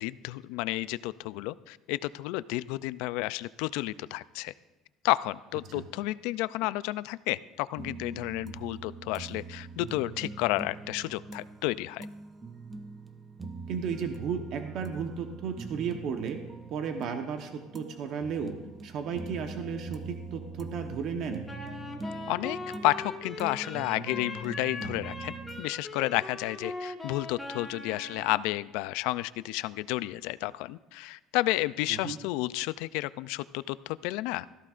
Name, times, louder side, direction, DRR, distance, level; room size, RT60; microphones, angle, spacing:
voice 1, 0.0-4.5 5.0-12.1 22.3-34.5, left 18 dB, 80° left, 17 dB, 0.3 m, -31 dB
sound 1, 7.8-25.6, right 4 dB, 15° right, 0.5 m, -43 dB
voice 2, 13.7-16.4 16.7-18.6 18.8-21.5 31.9-32.2, right 6 dB, 50° right, 5 dB, 1.0 m, -34 dB
Wind instrument woodwind instrument, 21.5-28.4, left 2 dB, 5° left, 1.3 m, -41 dB
16.5 x 14.0 x 2.5 m, 1.1 s
cardioid pair, 165°, 0 cm